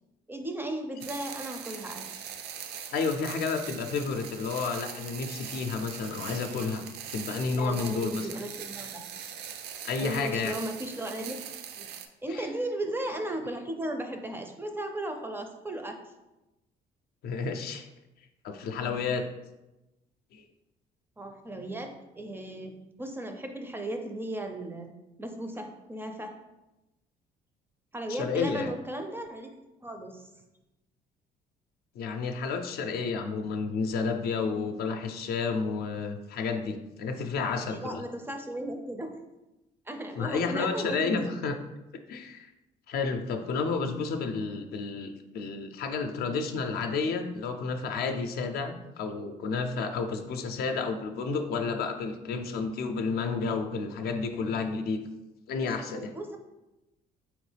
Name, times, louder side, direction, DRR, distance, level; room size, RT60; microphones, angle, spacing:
voice 1, 0.3-2.3 7.6-9.1 10.0-11.4 11.8-11.9 12.2-16.0 21.2-24.9 25.2-26.3 27.9-29.5 29.8-30.2 37.5-39.1 39.9-41.2 55.6-56.4, right 1 dB, 15° right, 4 dB, 0.4 m, -36 dB
sound 1, 1.0-12.1, right 8 dB, 75° right, 0.4 m, -41 dB
voice 2, 2.9-6.8 7.1-8.3 9.8-10.6 12.3-12.5 17.2-17.9 18.4-19.2 20.3-20.4 28.1-28.7 31.9-38.0 40.2-41.6 42.1-42.5 42.9-55.0 55.5-56.1, left 4 dB, 65° left, 6 dB, 0.5 m, -31 dB
3.9 x 3.1 x 3.3 m, 0.98 s
cardioid pair, 110°, 17 cm